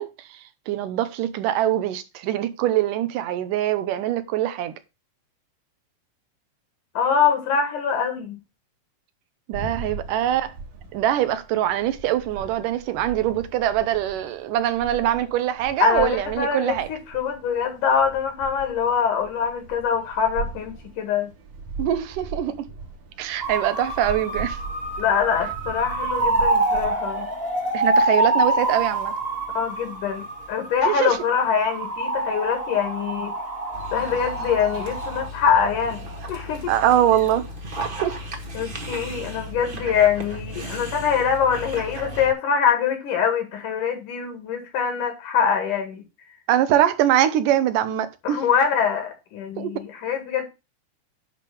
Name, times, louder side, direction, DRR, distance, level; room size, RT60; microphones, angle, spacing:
voice 1, 0.0-4.7 9.5-10.5 10.9-16.9 21.8-22.7 23.2-24.6 27.7-29.1 30.9-31.2 36.7-37.5 38.0-38.2 46.5-48.4 49.6-49.7, right 11 dB, 85° right, 2.5 m, -23 dB
voice 2, 6.9-8.4 15.8-21.3 25.0-27.3 29.5-33.3 33.9-36.7 38.5-46.0 48.2-50.4, left 7 dB, 70° left, 3.1 m, -24 dB
sound 1, 9.5-26.9, right 3 dB, 65° right, 3.1 m, -39 dB
sound 2, 23.4-35.3, right 2 dB, 25° right, 1.5 m, -26 dB
Dog, 33.7-42.3, equal, 45° right, 0.6 m, -35 dB
10.5 x 3.5 x 6.9 m
omnidirectional pair, 3.7 m